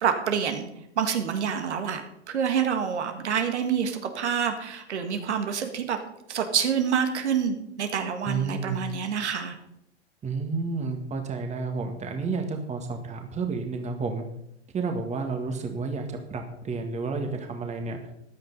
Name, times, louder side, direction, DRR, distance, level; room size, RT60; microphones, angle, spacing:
voice 1, 0.0-0.7 1.0-2.0 2.3-6.0 6.3-9.6, right 7 dB, 70° right, 6 dB, 2.0 m, -27 dB
voice 2, 8.3-8.9 10.2-14.2 14.7-18.0, right 4 dB, 20° right, 4 dB, 1.8 m, -31 dB
14.5 x 10.5 x 4.1 m, 0.77 s
hypercardioid pair, 105°, 35 cm